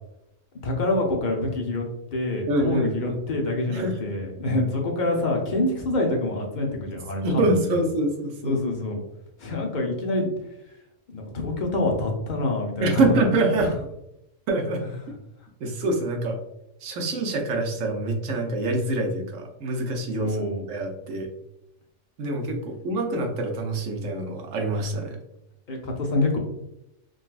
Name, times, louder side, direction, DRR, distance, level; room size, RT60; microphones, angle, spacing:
voice 1, 0.6-1.9 2.1-7.6 8.4-9.0 9.4-10.3 11.1-13.2 13.6-13.7 20.2-20.6 25.7-26.4, left 2 dB, 50° left, 0 dB, 0.6 m, -26 dB
voice 2, 2.5-3.1 3.7-4.0 7.2-8.6 12.8-13.7 14.5-14.8 15.6-16.4 16.8-21.3 22.2-25.2, right 2 dB, 85° right, 2 dB, 1.0 m, -25 dB
3.8 x 2.3 x 2.3 m, 0.84 s
omnidirectional pair, 1.3 m